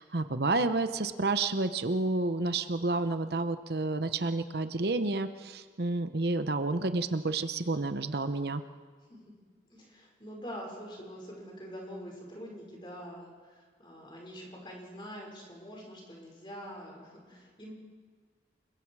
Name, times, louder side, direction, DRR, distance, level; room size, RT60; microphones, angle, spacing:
voice 1, 0.0-8.6, right 2 dB, 65° right, 10 dB, 0.9 m, -30 dB
voice 2, 9.7-17.7, equal, 25° left, -1 dB, 5.5 m, -45 dB
29.0 x 22.0 x 4.8 m, 1.6 s
head